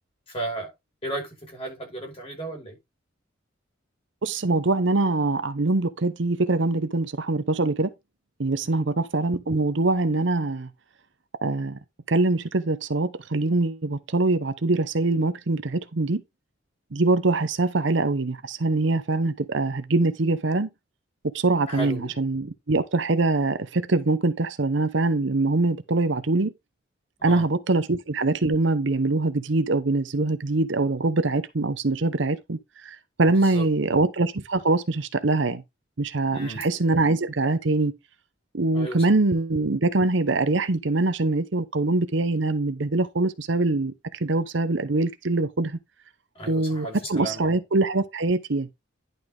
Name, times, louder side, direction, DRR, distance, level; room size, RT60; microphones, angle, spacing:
voice 1, 0.3-0.7 1.0-2.8 8.6-8.9 21.7-22.2 27.2-27.5 33.3-34.0 36.3-36.7 38.7-39.1 46.3-47.6, right 2 dB, 30° left, 5.3 m, -35 dB
voice 2, 4.2-7.9 8.4-10.7 11.4-11.8 12.1-16.2 16.9-20.7 21.2-26.5 27.2-35.6 36.0-37.9 38.5-43.9 44.2-45.8 46.5-48.7, right 2 dB, 60° right, 0.8 m, -23 dB
11.0 x 5.4 x 3.8 m
head